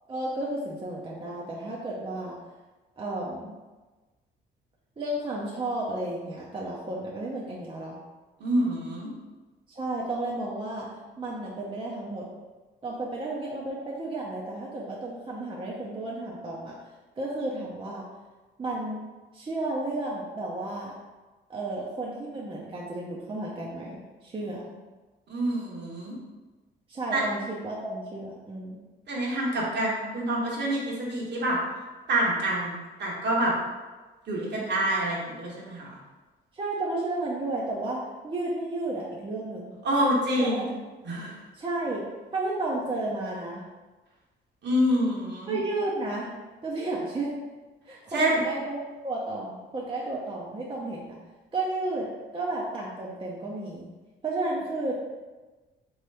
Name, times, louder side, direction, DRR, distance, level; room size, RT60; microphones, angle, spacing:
voice 1, 0.1-2.3 3.0-3.5 5.0-8.0 9.7-10.9 11.2-12.2 12.8-16.7 17.2-18.0 18.6-19.0 19.3-20.9 21.5-24.6 26.9-28.8 36.5-38.0 38.2-39.7 40.4-40.6 41.5-42.0 42.3-43.6 45.5-46.3 46.6-47.3 47.9-51.1 51.5-52.1 52.3-53.9 54.2-54.9, right 2 dB, 25° right, -4 dB, 0.7 m, -32 dB
voice 2, 8.4-9.1 24.5-24.7 25.3-26.1 27.1-27.2 29.1-31.6 32.1-33.5 34.3-36.0 39.8-40.7 41.0-41.4 44.6-45.5 48.1-48.4, right 1 dB, 60° right, -4 dB, 1.3 m, -27 dB
3.6 x 3.0 x 3.4 m, 1.2 s
cardioid pair, 90°, 20 cm